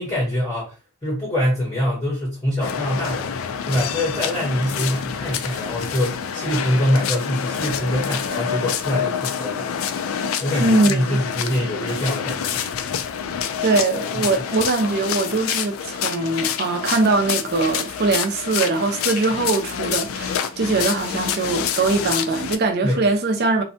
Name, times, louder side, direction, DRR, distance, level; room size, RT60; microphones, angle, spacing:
voice 1, 0.0-3.3 3.7-12.6 14.2-14.4 22.8-23.0, equal, 15° left, 0.7 m, -24 dB
sound 1, 2.6-22.6, left 8 dB, 65° left, 0.3 m, -27 dB
voice 2, 10.6-11.2 13.6-23.6, right 3 dB, 45° right, 0.5 m, -21 dB
2.6 x 2.2 x 2.6 m
head